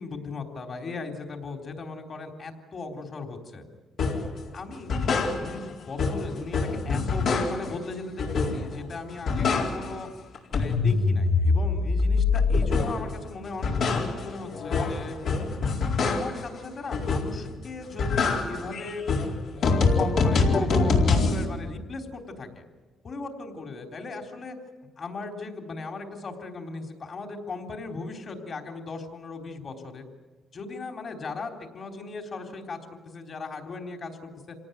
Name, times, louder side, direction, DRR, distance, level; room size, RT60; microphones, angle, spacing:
voice 1, 0.0-3.6 4.5-10.1 10.5-15.2 16.1-19.0 20.0-22.6 23.0-24.6 25.0-30.0 30.5-32.8 33.1-34.6, left 3 dB, 45° left, 4 dB, 3.8 m, -37 dB
sound 1, 4.0-4.3 4.7-5.7 6.0-7.8 8.2-8.8 9.1-10.1 10.3-13.1 13.4-16.5 16.9-17.5 17.8-21.4, left 4 dB, 70° left, 4.3 m, -25 dB
27.0 x 18.5 x 9.4 m, 1.3 s
cardioid pair, 90°, 0 cm